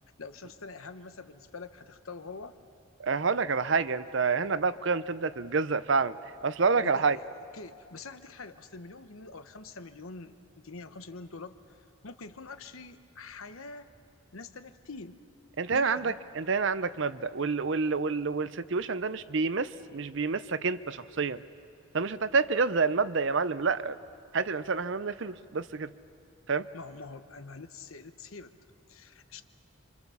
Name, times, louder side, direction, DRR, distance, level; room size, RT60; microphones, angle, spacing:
voice 1, 0.2-2.5 6.7-11.8 12.0-13.9 14.3-15.2 15.7-16.2 26.7-28.5 28.9-29.4, left 3 dB, 80° left, 10 dB, 1.1 m, -45 dB
voice 2, 3.0-6.2 6.4-7.2 15.6-21.4 21.9-24.0 24.3-25.9 26.5-26.7, right 4 dB, 60° right, 14 dB, 0.6 m, -28 dB
28.5 x 25.5 x 7.0 m, 2.4 s
head